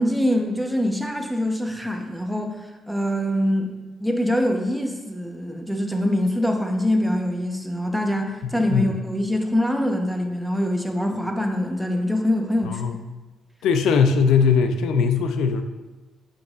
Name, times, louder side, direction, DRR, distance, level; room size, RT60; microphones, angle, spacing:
voice 1, 0.0-2.5 2.9-3.7 4.0-12.8, left 1 dB, ahead, 2 dB, 1.0 m, -24 dB
voice 2, 13.6-15.6, left 6 dB, 85° left, 7 dB, 0.5 m, -19 dB
8.4 x 6.4 x 2.5 m, 1.2 s
cardioid pair, 90°, 0 cm